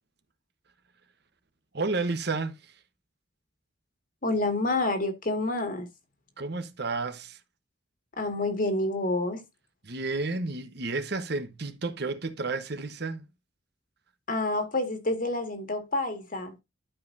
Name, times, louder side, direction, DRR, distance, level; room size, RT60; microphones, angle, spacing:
voice 1, 1.7-2.6 6.4-7.4 9.8-13.3, right 3 dB, 60° right, 1.2 m, -31 dB
voice 2, 4.2-5.9 8.2-9.4 14.3-16.5, left 2 dB, 45° left, 2.1 m, -28 dB
12.5 x 5.3 x 2.7 m
head